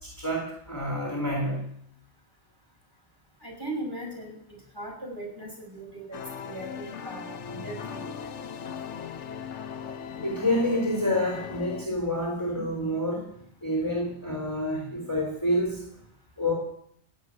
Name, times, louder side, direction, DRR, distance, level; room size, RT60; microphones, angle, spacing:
voice 1, 0.0-1.6 10.2-13.3 13.6-15.8 16.4-16.5, left 1 dB, 15° left, -1 dB, 3.3 m, -28 dB
voice 2, 3.4-4.3 4.7-8.1, right 1 dB, 20° right, 0 dB, 5.7 m, -38 dB
sound 1, 6.1-11.9, left 7 dB, 90° left, 1.2 m, -38 dB
16.0 x 7.7 x 9.5 m, 0.70 s
omnidirectional pair, 1.2 m